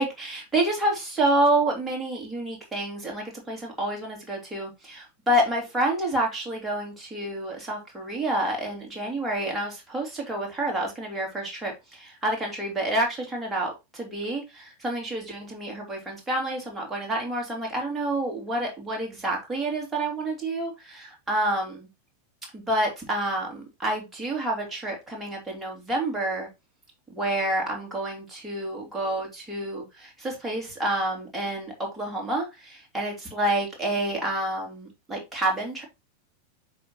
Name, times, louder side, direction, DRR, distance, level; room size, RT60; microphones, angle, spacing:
voice 1, 0.0-21.9 22.5-26.5 27.1-35.8, right 1 dB, 10° right, 3.1 m, -28 dB
7.4 x 5.6 x 2.9 m
figure-of-eight pair, 90°, 0 cm